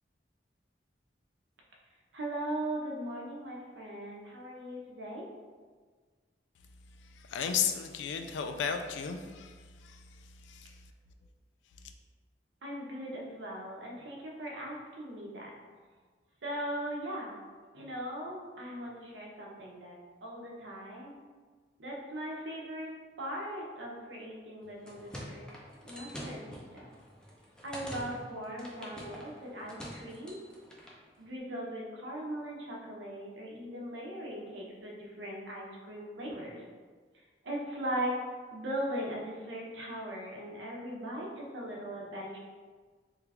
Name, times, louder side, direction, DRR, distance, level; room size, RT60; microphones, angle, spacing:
voice 1, 2.1-5.3 12.6-15.5 16.4-17.4 17.7-21.1 21.8-22.9 23.2-25.4 25.8-26.9 27.6-30.4 31.2-36.6 37.4-38.2 38.5-42.4, right 1 dB, 90° right, -2 dB, 0.7 m, -39 dB
voice 2, 7.3-9.6 9.8-10.0 10.5-10.7, left 7 dB, 85° left, 7 dB, 0.3 m, -33 dB
sound 1, 24.6-31.0, equal, 5° left, 0.3 m, -46 dB
3.2 x 2.4 x 3.3 m, 1.5 s
head